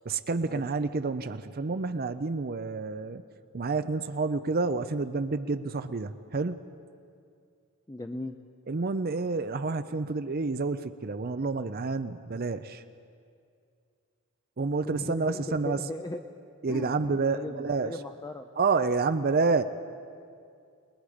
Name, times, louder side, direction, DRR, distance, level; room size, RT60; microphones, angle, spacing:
voice 1, 0.1-3.2 3.5-6.6 8.7-12.8 14.6-15.8 16.6-17.9 18.6-19.6, right 4 dB, 45° right, 10 dB, 0.6 m, -29 dB
voice 2, 7.9-8.3 14.8-16.2 16.7-18.5, left 1 dB, 15° left, 5 dB, 0.6 m, -37 dB
29.5 x 19.5 x 5.0 m, 2.3 s
head